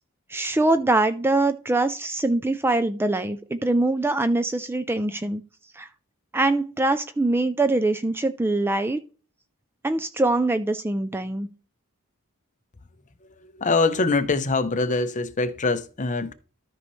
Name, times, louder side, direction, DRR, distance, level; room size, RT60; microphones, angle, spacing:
voice 1, 0.3-5.4 5.8-5.9 6.3-9.0 9.8-11.5, right 2 dB, 10° right, 0.4 m, -23 dB
voice 2, 13.4-16.3, left 3 dB, 35° left, 0.7 m, -24 dB
13.0 x 5.4 x 3.2 m
head